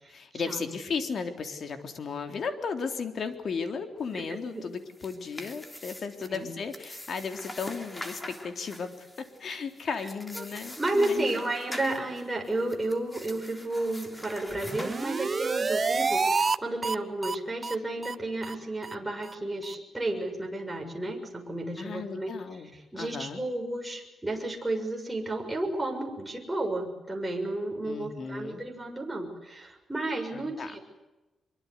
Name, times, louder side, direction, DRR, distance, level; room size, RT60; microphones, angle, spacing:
voice 1, 0.1-11.4 21.8-23.4 27.8-28.6 30.3-30.8, left 5 dB, 55° left, 7 dB, 3.5 m, -35 dB
sound 1, 4.7-15.6, left 1 dB, 15° left, 3.3 m, -44 dB
voice 2, 10.8-22.3 22.9-30.8, right 2 dB, 10° right, 1 dB, 6.7 m, -32 dB
sound 2, 14.5-16.6 16.8-17.0 17.2-17.4 17.6-17.8 18.0-18.2 18.4-18.6 18.8-18.9 19.2-19.3 19.6-19.7, right 4 dB, 30° right, 0.8 m, -28 dB
24.5 x 23.5 x 8.3 m, 1.0 s
cardioid pair, 120°, 0 cm